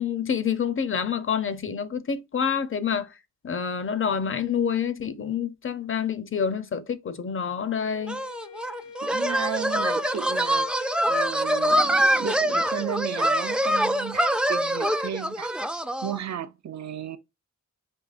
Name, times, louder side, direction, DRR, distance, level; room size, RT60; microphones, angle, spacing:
voice 1, 0.0-3.1 3.4-8.2, left 7 dB, 45° left, 0.6 m, -27 dB
Wind instrument woodwind instrument, 7.7-12.1, left 5 dB, 85° left, 1.1 m, -45 dB
sound 1, 8.1-16.2, equal, 5° right, 0.3 m, -24 dB
voice 2, 9.0-10.7 11.0-15.5 16.0-17.2, right 9 dB, 70° right, 0.5 m, -34 dB
5.4 x 2.8 x 2.4 m
wide cardioid pair, 90°, 29 cm